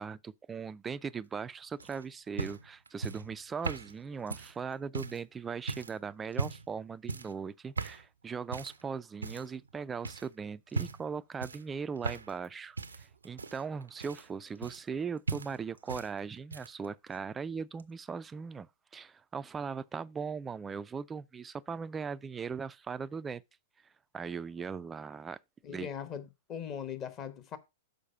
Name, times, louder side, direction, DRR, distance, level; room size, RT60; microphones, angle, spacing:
voice 1, 0.0-23.4 24.1-25.4 25.7-25.9, right 6 dB, 15° right, 0.3 m, -39 dB
sound 1, 1.8-5.2 5.7-6.0 6.3-6.7 7.1-7.4 7.8-8.1 8.5-8.8 9.2-9.7 10.0-10.3 10.7-11.1 11.4-12.5 12.8-15.0 15.3-16.1 16.4-16.9 17.8-17.9, right 4 dB, 80° right, 0.5 m, -38 dB
voice 2, 25.6-27.6, left 8 dB, 30° left, 1.2 m, -40 dB
6.5 x 5.0 x 5.4 m
figure-of-eight pair, 105°, 0 cm